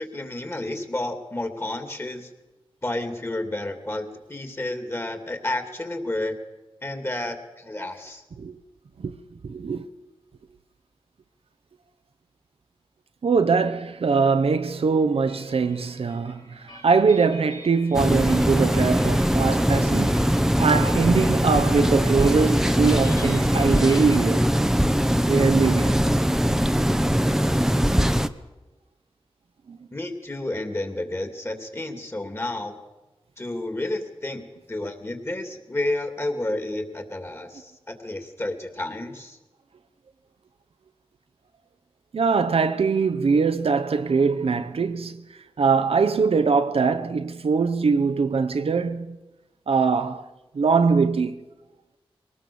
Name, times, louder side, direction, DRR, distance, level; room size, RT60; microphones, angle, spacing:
voice 1, 0.0-2.3 2.8-6.4 6.8-8.2 29.9-32.8 33.4-39.4, left 1 dB, 25° left, 2.7 m, -31 dB
voice 2, 9.4-9.9 13.2-20.2 20.6-24.5 25.2-26.0 29.7-29.8 42.1-45.2 45.6-49.2 49.7-50.3 50.5-51.4, right 5 dB, 80° right, 1.0 m, -22 dB
sound 1, 14.1-24.2, left 2 dB, 50° left, 4.1 m, -46 dB
sound 2, 17.9-28.3, equal, 5° right, 0.9 m, -21 dB
22.5 x 18.5 x 7.1 m
wide cardioid pair, 85°, 10 cm